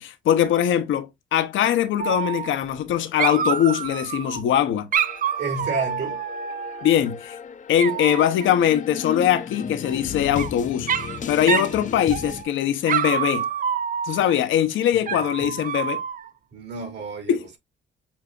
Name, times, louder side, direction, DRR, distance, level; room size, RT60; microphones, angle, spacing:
voice 1, 0.0-4.9 6.8-7.4 7.7-10.9 11.3-13.5 14.0-16.0 17.3-17.6, left 10 dB, 80° left, 0.9 m, -22 dB
Dog, 2.0-2.9 3.2-4.4 4.9-7.0 7.8-8.5 9.8-10.5 10.9-11.2 11.5-11.8 12.1-12.5 12.9-14.4 15.1-16.3, right 8 dB, 45° right, 0.6 m, -27 dB
sound 1, 4.9-12.4, left 6 dB, 40° left, 0.6 m, -35 dB
voice 2, 5.4-6.2 15.1-15.6 16.5-17.3, right 3 dB, 65° right, 2.8 m, -31 dB
7.3 x 2.7 x 2.4 m
cardioid pair, 90°, 20 cm